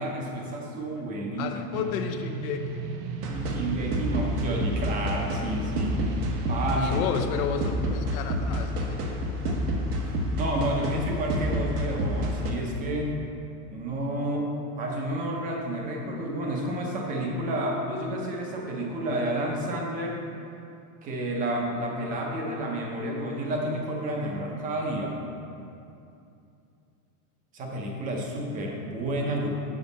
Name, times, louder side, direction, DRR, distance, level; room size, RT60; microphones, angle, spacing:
voice 1, 0.0-1.8 3.3-6.0 6.5-7.0 10.0-13.1 13.7-20.2 21.0-25.2 27.5-29.5, right 1 dB, 20° right, 0 dB, 0.6 m, -30 dB
voice 2, 1.4-2.9 6.8-9.2 9.4-9.7, left 7 dB, 65° left, 5 dB, 0.7 m, -32 dB
sound 1, 1.7-6.8, right 5 dB, 65° right, 0.7 m, -37 dB
sound 2, 3.2-12.5, equal, 85° right, 1.3 m, -29 dB
7.2 x 6.1 x 4.0 m, 2.6 s
supercardioid pair, 165°, 45 cm